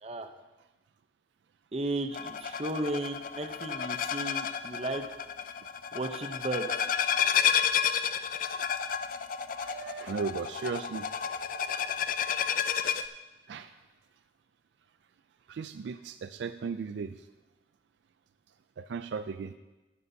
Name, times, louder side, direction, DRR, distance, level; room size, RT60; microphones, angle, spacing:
voice 1, 1.7-5.1 5.9-6.8, right 2 dB, 35° right, 6 dB, 0.7 m, -34 dB
sound 1, 2.1-13.1, left 8 dB, 50° left, 0.4 m, -31 dB
voice 2, 9.5-11.1 13.5-13.7 15.5-17.2 18.8-19.5, right 5 dB, 75° right, 10 dB, 0.4 m, -36 dB
13.5 x 9.5 x 2.8 m, 1.1 s
head